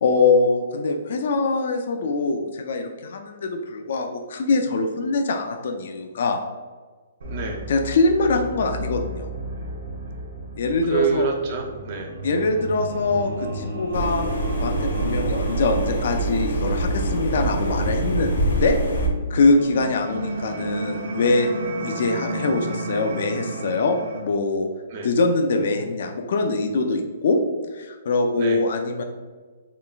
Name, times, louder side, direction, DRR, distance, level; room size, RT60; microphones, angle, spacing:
voice 1, 0.0-6.4 7.7-9.3 10.6-11.3 12.2-14.2 14.6-18.3 18.6-18.8 19.3-21.5 21.8-24.7 25.0-27.4 27.7-29.0, left 3 dB, 45° left, 5 dB, 0.3 m, -23 dB
sound 1, 7.2-24.2, right 1 dB, 65° right, 0.7 m, -33 dB
voice 2, 7.3-7.7 10.8-12.2 24.9-25.1 28.4-28.6, right 6 dB, 30° right, 2 dB, 0.5 m, -26 dB
sound 2, 13.9-19.1, right 2 dB, 90° left, 0.7 m, -25 dB
3.7 x 3.3 x 2.4 m, 1.4 s
hypercardioid pair, 180°, 0 cm